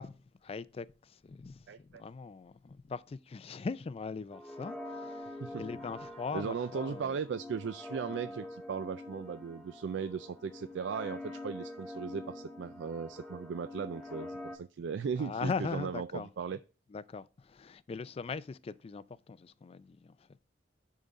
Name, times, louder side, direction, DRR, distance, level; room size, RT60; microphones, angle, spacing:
voice 1, 0.0-7.2 8.1-8.3 15.2-16.3 16.9-20.4, left 4 dB, 35° left, 0.3 m, -40 dB
voice 2, 1.7-2.0 5.4-5.6 6.3-16.6, right 6 dB, 75° right, 0.3 m, -37 dB
sound 1, 4.3-14.6, left 1 dB, ahead, 0.8 m, -45 dB
10.0 x 3.8 x 4.0 m
head